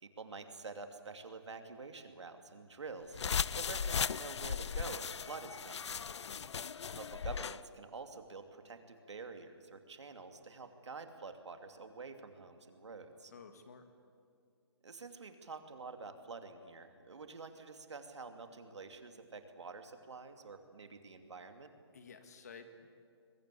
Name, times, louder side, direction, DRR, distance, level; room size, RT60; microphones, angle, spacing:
voice 1, 0.0-5.9 6.9-13.3 14.8-21.7, right 4 dB, 90° right, 6 dB, 2.7 m, -48 dB
sound 1, 3.1-7.6, left 6 dB, 80° left, 0.5 m, -37 dB
voice 2, 13.3-13.8 21.9-22.9, left 5 dB, 35° left, 8 dB, 1.8 m, -53 dB
22.0 x 21.5 x 8.4 m, 2.3 s
hypercardioid pair, 180°, 14 cm